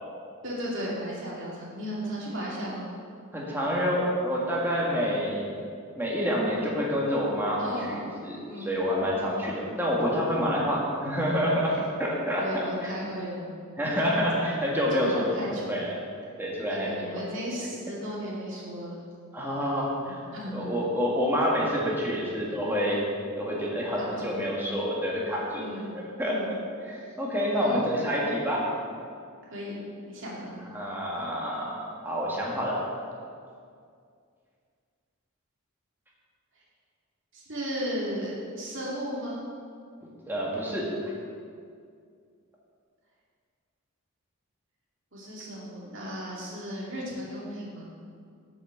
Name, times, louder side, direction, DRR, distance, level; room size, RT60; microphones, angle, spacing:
voice 1, 0.4-2.9 7.6-8.1 8.4-8.8 12.4-13.5 15.0-15.8 16.7-19.0 20.3-20.7 24.0-24.4 25.5-25.9 26.2-26.6 27.5-27.9 29.4-30.7 37.3-39.4 45.1-47.9, equal, 60° right, -5 dB, 2.6 m, -35 dB
voice 2, 3.3-5.5 5.9-12.9 13.8-15.9 16.4-17.2 19.3-20.2 20.5-23.0 23.4-25.6 25.9-26.4 26.8-28.6 30.7-32.8 40.2-40.9, equal, 10° right, -5 dB, 1.8 m, -28 dB
8.0 x 6.2 x 7.3 m, 2.3 s
head